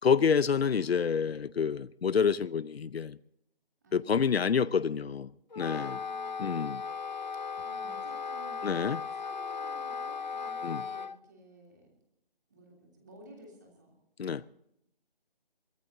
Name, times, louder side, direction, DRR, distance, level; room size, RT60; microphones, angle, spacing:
voice 1, 0.0-3.2 3.9-5.3 5.6-6.0 6.4-6.8 8.6-9.0 10.6-10.8 14.2-14.4, left 6 dB, 90° left, 17 dB, 0.7 m, -28 dB
voice 2, 3.8-4.3 4.6-5.0 5.6-6.6 7.6-8.8 9.1-11.9 12.5-13.9, right 1 dB, 20° right, 0 dB, 3.0 m, -54 dB
Wind instrument woodwind instrument, 5.5-11.2, left 5 dB, 45° left, 0.6 m, -37 dB
24.0 x 16.5 x 2.7 m, 0.79 s
hypercardioid pair, 180°, 30 cm